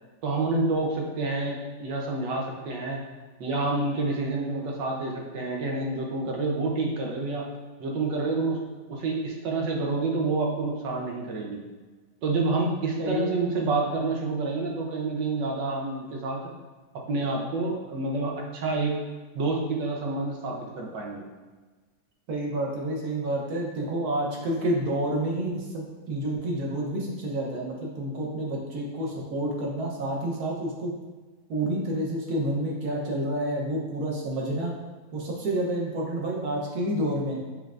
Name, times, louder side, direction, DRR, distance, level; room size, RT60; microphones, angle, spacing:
voice 1, 0.2-3.0 3.4-7.5 7.8-8.6 8.9-11.6 12.2-16.4 17.1-19.0 19.3-21.2, right 3 dB, 85° right, 0 dB, 1.5 m, -28 dB
voice 2, 22.3-30.9 31.5-34.7 35.1-37.4, right 1 dB, 65° right, -1 dB, 1.4 m, -29 dB
6.5 x 3.2 x 2.5 m, 1.3 s
omnidirectional pair, 1.9 m